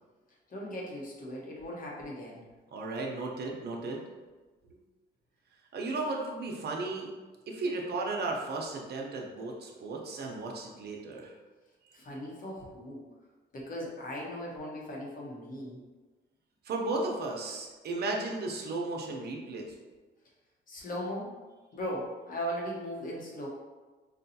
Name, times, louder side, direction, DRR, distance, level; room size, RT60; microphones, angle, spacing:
voice 1, 0.5-2.4 11.9-13.0 13.5-15.8 20.7-21.3 21.7-23.5, equal, 45° left, -3 dB, 1.0 m, -38 dB
voice 2, 2.7-4.0 5.7-7.1 7.5-11.3 16.6-19.7, right 3 dB, 55° right, 0 dB, 0.7 m, -35 dB
4.2 x 2.3 x 2.7 m, 1.3 s
cardioid pair, 90°, 20 cm